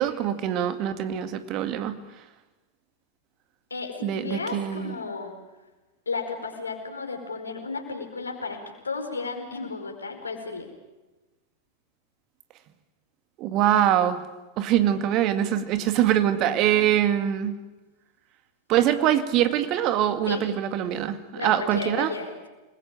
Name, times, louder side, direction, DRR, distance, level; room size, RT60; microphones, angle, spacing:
voice 1, 0.0-2.0 4.0-4.9 13.4-14.2 14.6-17.5 18.7-22.1, right 11 dB, 40° right, 9 dB, 2.1 m, -23 dB
voice 2, 3.7-5.3 6.1-10.7 20.3-20.4 21.3-22.5, left 4 dB, 75° left, 4 dB, 4.8 m, -33 dB
28.5 x 21.0 x 9.1 m, 1.1 s
figure-of-eight pair, 90°, 0 cm